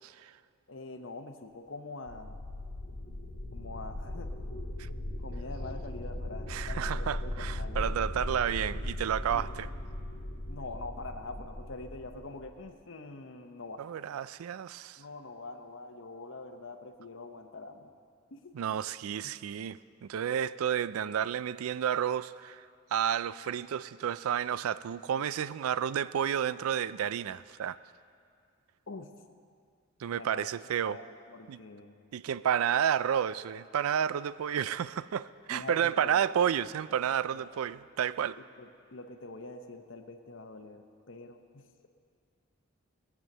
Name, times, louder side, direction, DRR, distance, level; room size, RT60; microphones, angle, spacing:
voice 1, 0.7-2.4 3.5-4.3 5.2-7.8 9.3-9.5 10.5-13.9 15.0-17.9 18.3-18.5 19.2-19.3 28.9-29.1 30.1-30.5 30.8-32.0 35.5-36.2 37.3-37.5 38.6-41.6, left 3 dB, 60° left, 7 dB, 0.8 m, -44 dB
sound 1, 2.1-12.7, left 1 dB, 85° left, 1.5 m, -38 dB
voice 2, 6.5-9.7 13.8-15.0 18.5-22.6 22.9-27.8 30.0-31.0 31.5-31.6 32.1-38.4, right 9 dB, 85° right, 17 dB, 0.3 m, -31 dB
16.5 x 7.4 x 6.6 m, 2.2 s
head